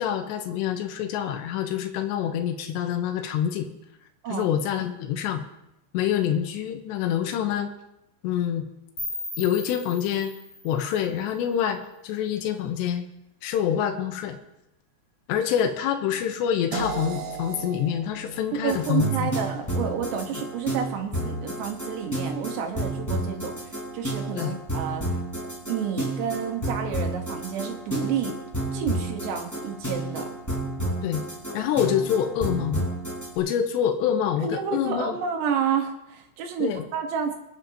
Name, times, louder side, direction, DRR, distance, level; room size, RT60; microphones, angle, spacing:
voice 1, 0.0-3.7 4.3-5.4 5.9-7.7 8.2-8.7 9.4-10.3 10.6-13.0 13.4-14.4 15.3-19.3 24.4-24.5 31.0-31.2 31.5-32.9 33.4-35.1 36.6-36.8, left 9 dB, 85° left, 6 dB, 3.1 m, -26 dB
sound 1, 9.0-11.9, left 2 dB, 30° left, 7.1 m, -38 dB
sound 2, 16.7-22.6, right 4 dB, 60° right, 1.5 m, -39 dB
voice 2, 18.6-25.2 25.7-28.4 28.7-30.3 34.4-37.4, right 7 dB, 75° right, 3 dB, 3.5 m, -30 dB
sound 3, 18.7-33.3, right 1 dB, 5° left, 4.4 m, -30 dB
26.0 x 9.5 x 2.9 m, 0.90 s
omnidirectional pair, 4.9 m